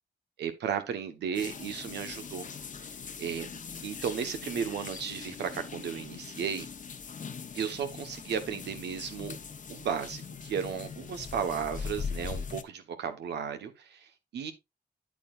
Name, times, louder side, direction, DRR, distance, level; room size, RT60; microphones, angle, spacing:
voice 1, 0.4-2.5 3.2-3.5 3.8-6.7 7.5-9.4 9.7-14.5, right 7 dB, 90° right, 1.2 m, -34 dB
sound 1, 1.3-12.6, left 6 dB, 50° left, 0.9 m, -41 dB
8.5 x 8.3 x 2.5 m
cardioid pair, 65°, 17 cm